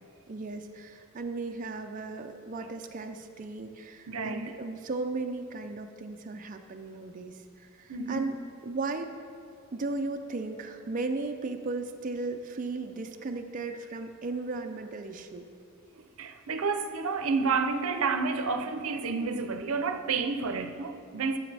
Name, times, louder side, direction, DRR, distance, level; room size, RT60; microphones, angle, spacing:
voice 1, 0.3-8.3 8.6-9.2 9.7-15.5, right 3 dB, 40° right, 5 dB, 0.4 m, -36 dB
voice 2, 4.1-4.5 7.9-8.3 15.9-21.4, right 4 dB, 85° right, 8 dB, 0.6 m, -30 dB
13.5 x 7.0 x 3.3 m, 2.4 s
head